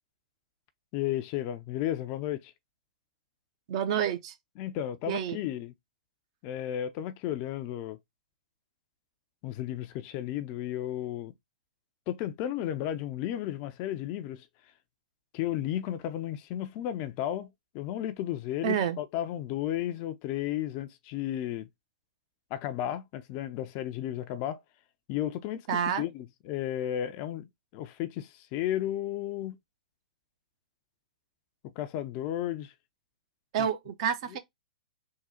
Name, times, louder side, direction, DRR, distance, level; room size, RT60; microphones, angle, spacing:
voice 1, 0.9-2.5 4.6-5.7 6.4-8.0 9.4-11.3 12.1-14.5 15.3-17.5 17.7-21.7 22.5-24.6 25.1-29.6 31.8-32.7 33.6-33.7 34.3-34.4, left 12 dB, 35° left, 0.5 m, -33 dB
voice 2, 3.7-4.3 5.1-5.4 18.6-19.0 25.7-26.1 33.5-34.4, right 8 dB, 45° right, 0.8 m, -29 dB
3.7 x 2.3 x 4.3 m
figure-of-eight pair, 115°, 4 cm